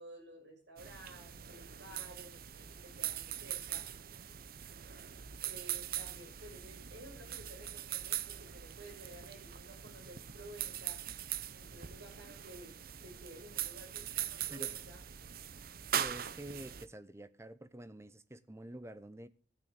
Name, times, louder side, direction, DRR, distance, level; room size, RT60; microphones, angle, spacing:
voice 1, 0.0-3.9 5.4-11.0 11.5-12.7 13.0-15.0, right 1 dB, 75° right, 6.6 m, -53 dB
sound 1, 0.8-16.8, right 10 dB, 55° right, 0.7 m, -41 dB
voice 2, 15.9-19.3, right 1 dB, 15° right, 0.8 m, -48 dB
12.5 x 9.7 x 5.1 m
head